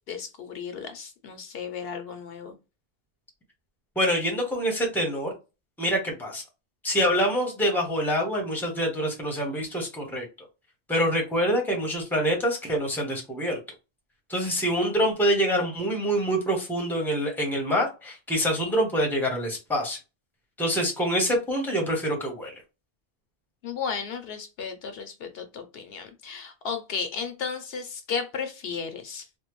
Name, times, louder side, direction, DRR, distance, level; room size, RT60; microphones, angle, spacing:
voice 1, 0.1-2.6 23.6-29.3, left 6 dB, 70° left, 0.8 m, -34 dB
voice 2, 4.0-5.3 5.8-6.4 6.8-10.3 10.9-13.6 14.3-20.0 20.6-22.5, equal, ahead, 0.8 m, -26 dB
3.4 x 2.2 x 3.0 m
omnidirectional pair, 1.1 m